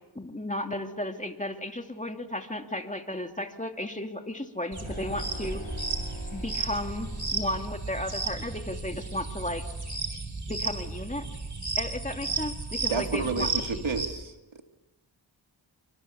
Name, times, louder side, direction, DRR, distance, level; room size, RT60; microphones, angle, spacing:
voice 1, 0.1-5.6 6.3-9.7 10.5-11.3 11.8-13.8, left 1 dB, 15° left, 4 dB, 2.5 m, -34 dB
sound 1, 4.7-14.1, right 4 dB, 35° right, 4.5 m, -33 dB
sound 2, 4.8-8.3, left 2 dB, 80° left, 6.9 m, -47 dB
voice 2, 12.9-14.3, right 5 dB, 75° right, 5 dB, 2.5 m, -30 dB
27.5 x 24.5 x 7.1 m, 1.1 s
wide cardioid pair, 65°, 47 cm